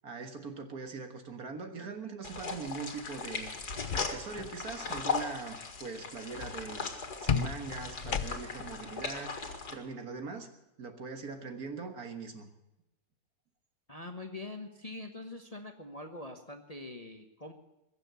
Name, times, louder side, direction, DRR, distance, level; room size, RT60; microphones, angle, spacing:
voice 1, 0.0-3.5 3.9-10.5 10.8-12.5, right 4 dB, 60° right, 6 dB, 2.0 m, -41 dB
sound 1, 2.2-9.7, left 4 dB, 65° left, 2.4 m, -38 dB
sound 2, 3.5-4.5 4.8-5.2 7.3-8.7, left 7 dB, 85° left, 0.4 m, -34 dB
voice 2, 13.9-17.5, left 2 dB, 25° left, 5 dB, 1.1 m, -44 dB
21.5 x 7.6 x 8.2 m, 0.93 s
omnidirectional pair, 1.9 m